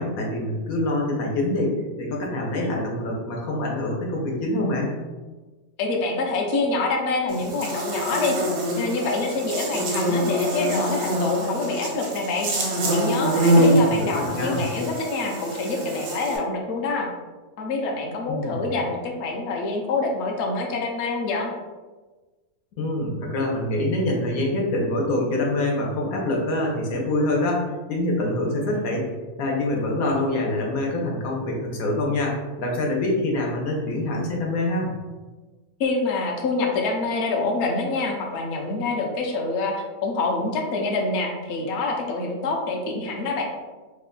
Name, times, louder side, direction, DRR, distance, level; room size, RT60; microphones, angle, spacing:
voice 1, 0.0-5.0 13.7-14.6 18.3-18.7 22.7-29.0 29.4-34.9, left 1 dB, 85° left, -1 dB, 1.2 m, -25 dB
voice 2, 5.8-8.4 8.8-12.5 12.9-17.1 17.6-21.5 35.8-43.4, left 3 dB, 65° left, 0 dB, 0.8 m, -26 dB
Buzz, 7.3-16.4, right 1 dB, 80° right, 1.2 m, -24 dB
3.2 x 2.1 x 3.7 m, 1.3 s
omnidirectional pair, 1.5 m